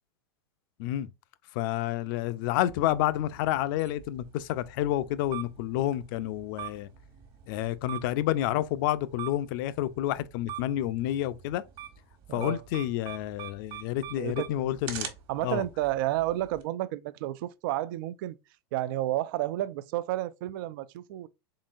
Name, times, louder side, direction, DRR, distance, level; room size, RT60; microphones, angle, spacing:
voice 1, 1.5-6.9 7.5-11.6 12.3-15.1 15.4-15.6, left 13 dB, 55° left, 0.5 m, -29 dB
sound 1, 2.7-16.6, right 10 dB, 40° right, 1.3 m, -45 dB
voice 2, 12.3-12.6 14.2-14.7 15.3-18.4 18.7-21.3, right 14 dB, 60° right, 0.4 m, -31 dB
3.8 x 3.7 x 2.4 m
hypercardioid pair, 110°, 13 cm